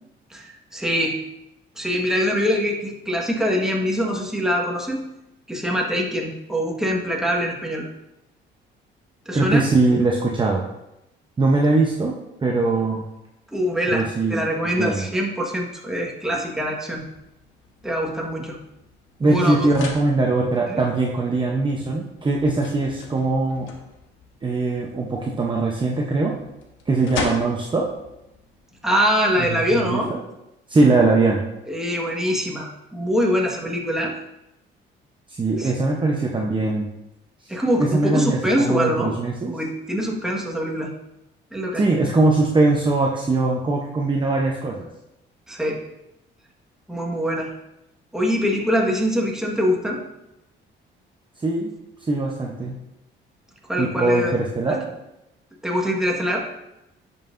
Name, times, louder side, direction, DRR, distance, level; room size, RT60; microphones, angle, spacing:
voice 1, 0.3-1.2 1.8-5.0 5.5-7.9 9.2-9.6 13.5-17.0 17.8-18.6 19.2-19.7 20.7-20.8 28.8-30.1 31.7-34.1 35.6-35.7 37.5-39.1 39.5-40.9 41.5-41.8 45.5-45.8 46.9-47.5 48.1-50.0 53.7-54.3 54.7-54.8 55.6-56.4, equal, 5° right, -2 dB, 1.5 m, -23 dB
voice 2, 9.3-10.6 11.4-12.1 12.4-13.0 13.9-14.4 14.7-15.1 19.2-23.7 24.4-26.4 26.9-27.9 29.4-30.2 30.7-31.4 35.3-36.9 37.8-39.5 41.7-44.9 51.4-51.7 52.1-52.7 53.8-54.9, right 2 dB, 25° right, -1 dB, 0.8 m, -21 dB
sound 1, 16.9-29.9, left 5 dB, 80° left, 1.2 m, -39 dB
10.5 x 5.6 x 2.6 m, 0.90 s
cardioid pair, 100°, 20 cm